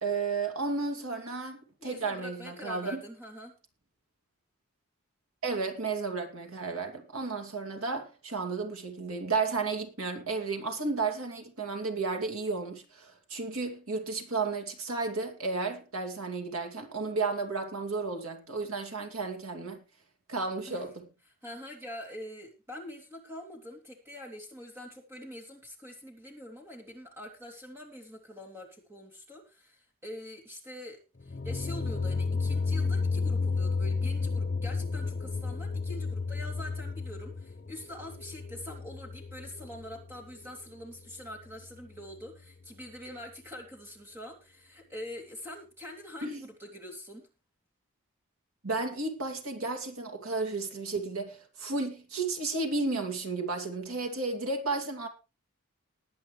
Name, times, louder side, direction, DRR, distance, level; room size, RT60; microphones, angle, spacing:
voice 1, 0.0-3.0 5.4-19.8 20.3-20.9 46.2-46.4 48.6-55.1, right 3 dB, 85° right, 2.5 m, -33 dB
voice 2, 1.8-3.6 20.7-20.8 21.4-47.3, left 1 dB, 10° right, 2.9 m, -44 dB
sound 1, 31.2-40.1, left 4 dB, 40° left, 0.7 m, -32 dB
20.0 x 8.7 x 3.2 m
head